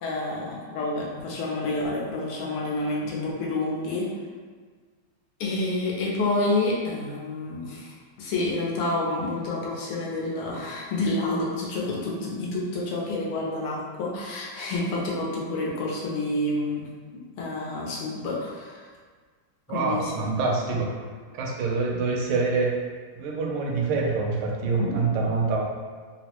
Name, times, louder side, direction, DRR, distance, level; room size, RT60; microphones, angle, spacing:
voice 1, 0.0-4.1 5.4-16.9 17.4-18.8 19.7-20.1 24.8-25.0, left 2 dB, 80° left, -3 dB, 1.6 m, -28 dB
voice 2, 19.7-21.0 21.3-22.8 23.2-25.6, right 4 dB, 80° right, 0 dB, 1.4 m, -26 dB
4.0 x 2.0 x 2.9 m, 1.6 s
omnidirectional pair, 2.4 m